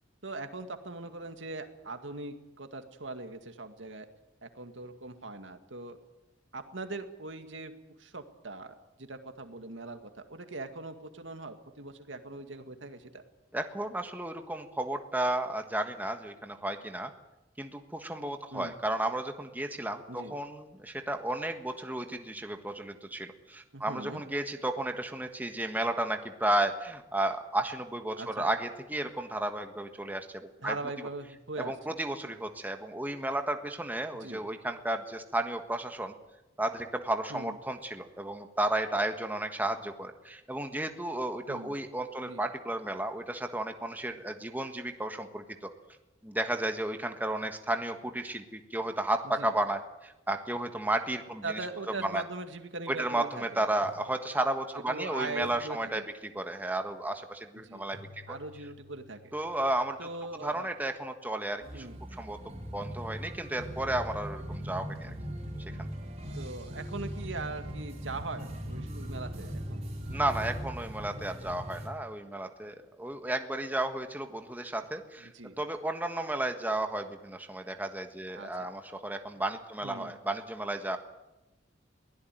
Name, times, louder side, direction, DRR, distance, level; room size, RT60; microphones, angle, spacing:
voice 1, 0.2-4.1 4.4-6.0 6.5-7.7 8.0-13.2 18.5-18.7 20.1-20.4 23.7-24.2 28.2-28.5 30.6-31.7 34.2-34.4 37.3-37.6 41.5-41.7 42.3-42.4 49.2-49.6 51.4-53.7 54.9-56.0 57.6-57.8 58.3-59.3 60.0-60.7 61.7-62.0 66.4-69.8 75.2-75.6 78.4-78.7 79.8-80.2, right 3 dB, 80° right, 7 dB, 2.2 m, -41 dB
voice 2, 13.5-17.1 17.6-30.7 31.6-36.1 36.6-45.7 46.2-51.6 52.0-52.2 52.9-58.2 59.3-60.1 60.4-61.9 62.2-65.1 70.1-75.3 75.6-81.0, right 1 dB, 10° right, 5 dB, 1.5 m, -33 dB
sound 1, 52.7-52.9 53.8-55.0 55.4-56.6 57.9-61.8, left 2 dB, 50° left, 7.4 m, -56 dB
sound 2, 61.6-71.9, equal, 35° right, 4.6 m, -39 dB
22.5 x 17.0 x 9.2 m, 0.96 s
head